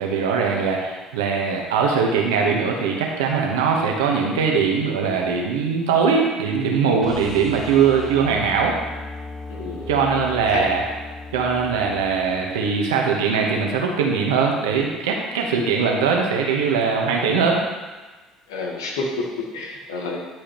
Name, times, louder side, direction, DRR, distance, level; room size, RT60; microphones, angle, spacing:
voice 1, 0.0-8.8 9.9-10.8 11.3-17.6, right 5 dB, 80° right, 0 dB, 1.2 m, -21 dB
sound 1, 7.0-13.0 15.5-15.6, left 3 dB, 20° left, 1.7 m, -37 dB
voice 2, 9.5-9.9 10.5-10.7 18.5-20.2, left 3 dB, 85° left, -1 dB, 1.4 m, -29 dB
10.5 x 4.9 x 3.1 m, 1.2 s
hypercardioid pair, 65°, 2 cm